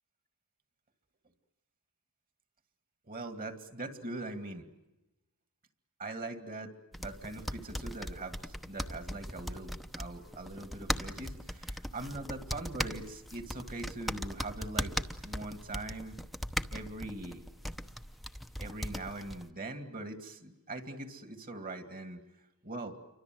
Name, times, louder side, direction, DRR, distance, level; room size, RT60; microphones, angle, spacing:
voice 1, 3.1-4.7 6.0-6.7 7.0-14.9 15.2-16.2 16.7-17.4 18.6-22.2 22.6-23.0, right 2 dB, 40° right, 8 dB, 2.2 m, -42 dB
sound 1, 6.9-19.5, equal, ahead, 0.9 m, -39 dB
28.5 x 24.5 x 7.8 m, 1.0 s
head